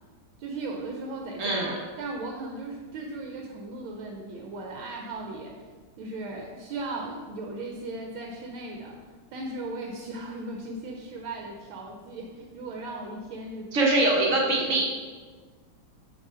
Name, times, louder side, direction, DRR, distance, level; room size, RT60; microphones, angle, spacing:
voice 1, 0.4-5.5 6.0-9.0 9.3-13.7, right 2 dB, 75° right, 1 dB, 1.5 m, -37 dB
voice 2, 1.4-1.8 13.7-14.9, right 2 dB, 50° right, -1 dB, 1.0 m, -23 dB
6.4 x 3.3 x 5.4 m, 1.4 s
omnidirectional pair, 2.3 m